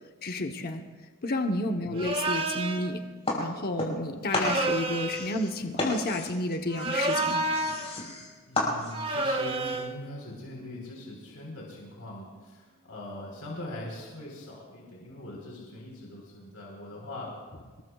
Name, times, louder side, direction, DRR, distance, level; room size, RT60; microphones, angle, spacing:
voice 1, 0.2-0.8 1.2-3.0 3.4-7.5, left 2 dB, 45° left, 4 dB, 0.9 m, -31 dB
voice 2, 1.8-2.1 8.5-17.4, left 1 dB, 90° left, -3 dB, 4.0 m, -42 dB
sound 1, 2.0-2.9 4.3-5.3 6.7-7.9 8.9-10.0, right 2 dB, 25° right, 0.9 m, -29 dB
sound 2, 3.2-4.1 4.3-9.2, left 2 dB, 30° left, 5.4 m, -33 dB
26.5 x 22.0 x 2.4 m, 1.5 s
head